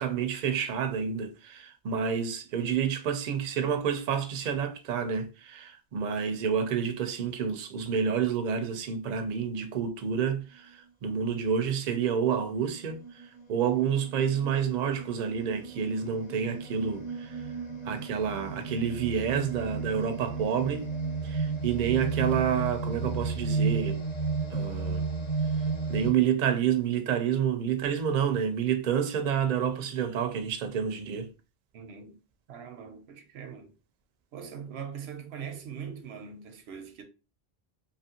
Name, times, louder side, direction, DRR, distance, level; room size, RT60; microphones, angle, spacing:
voice 1, 0.0-13.0 13.5-17.4 17.8-20.9 21.2-24.0 24.5-25.0 25.9-31.3, right 7 dB, 55° right, 0.5 m, -29 dB
sound 1, 11.7-11.8 12.4-26.1, right 4 dB, 40° left, 0.9 m, -33 dB
voice 2, 31.7-32.2 32.5-33.7 34.3-37.0, right 7 dB, 90° right, 0.9 m, -41 dB
2.8 x 2.5 x 2.8 m
omnidirectional pair, 1.0 m